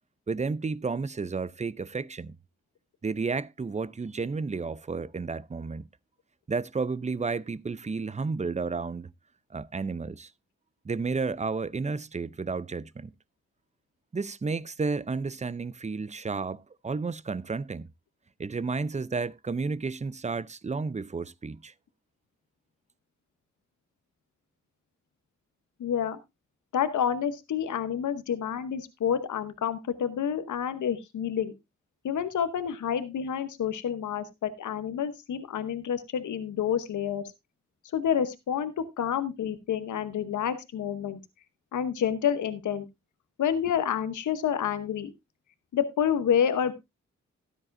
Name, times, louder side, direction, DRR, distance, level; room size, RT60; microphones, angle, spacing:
voice 1, 0.3-2.4 3.0-5.9 6.5-9.1 9.5-10.3 10.8-13.1 14.1-17.9 18.4-21.7, right 4 dB, 25° right, 0.5 m, -32 dB
voice 2, 25.8-26.2 26.7-31.5 32.0-37.2 37.9-41.2 41.7-42.9 43.4-45.1 45.7-46.7, left 8 dB, 85° left, 0.9 m, -28 dB
13.0 x 10.0 x 2.5 m
cardioid pair, 45°, 29 cm